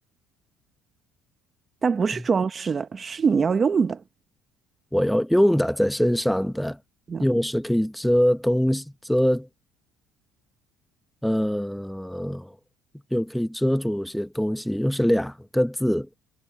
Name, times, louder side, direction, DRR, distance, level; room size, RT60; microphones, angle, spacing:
voice 1, 1.8-4.0 7.1-7.2, right 5 dB, 25° right, 1.0 m, -23 dB
voice 2, 4.9-6.8 7.2-9.5 11.2-12.5 13.1-16.1, equal, ahead, 0.9 m, -23 dB
cardioid pair, 130°, 0 cm